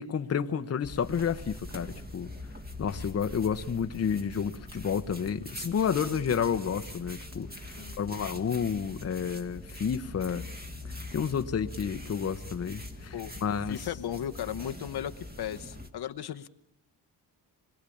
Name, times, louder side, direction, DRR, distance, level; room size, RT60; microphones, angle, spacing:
voice 1, 0.0-2.3 2.8-10.4 11.1-13.1 13.4-13.8, left 7 dB, 35° left, 0.9 m, -30 dB
sound 1, 0.8-15.9, left 1 dB, 20° right, 2.0 m, -43 dB
voice 2, 13.7-15.1 15.4-16.5, left 10 dB, 65° left, 0.9 m, -35 dB
26.0 x 22.0 x 8.5 m
wide cardioid pair, 150°, 42 cm